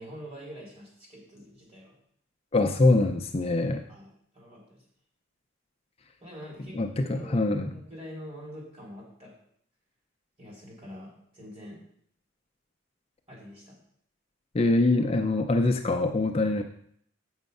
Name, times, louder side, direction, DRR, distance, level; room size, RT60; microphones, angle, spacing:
voice 1, 0.0-2.0 3.6-4.8 6.2-6.8 7.1-7.4 7.7-9.3 10.4-11.8 13.3-13.8 16.5-16.6, equal, 30° right, -4 dB, 3.7 m, -45 dB
voice 2, 2.5-3.8 6.8-7.7 14.5-16.6, left 2 dB, 30° left, 5 dB, 0.5 m, -24 dB
7.9 x 6.3 x 5.4 m, 0.67 s
head